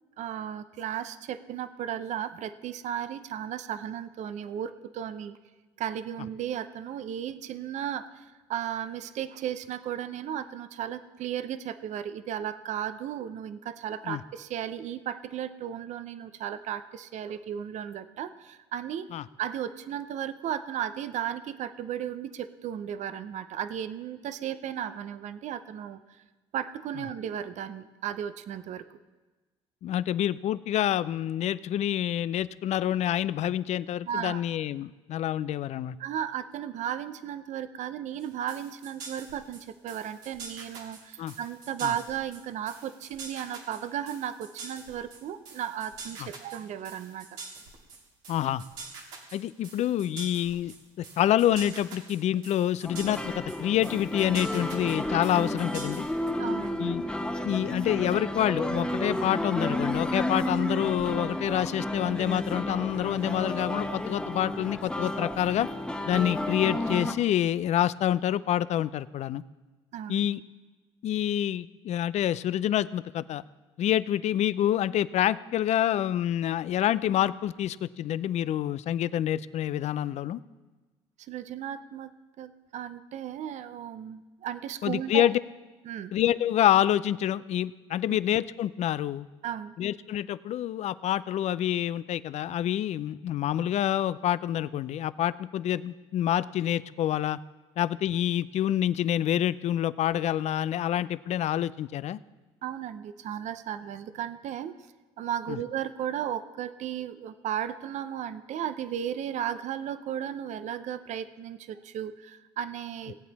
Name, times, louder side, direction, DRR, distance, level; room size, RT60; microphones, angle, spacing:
voice 1, 0.2-5.4 5.8-26.2 26.5-29.0 34.1-34.4 36.0-47.3 56.4-56.8 69.9-70.3 81.2-82.1 82.4-85.3 85.8-86.1 88.0-88.2 89.4-89.8 102.6-104.7 105.2-113.2, right 10 dB, 60° right, 12 dB, 0.7 m, -35 dB
voice 2, 29.8-36.0 41.2-41.3 41.8-41.9 46.2-46.3 48.3-48.6 49.3-56.0 56.8-57.1 57.4-65.7 66.1-69.4 70.1-70.4 71.0-73.4 73.8-80.4 84.8-85.4 86.1-89.3 89.8-97.4 97.8-102.2 105.5-105.6, left 11 dB, 55° left, 17 dB, 0.5 m, -27 dB
sound 1, 38.2-56.3, right 4 dB, 80° right, 2.3 m, -45 dB
sound 2, 52.8-67.1, left 1 dB, 5° left, 1.1 m, -32 dB
17.5 x 8.4 x 4.1 m, 1.2 s
hypercardioid pair, 60°, 14 cm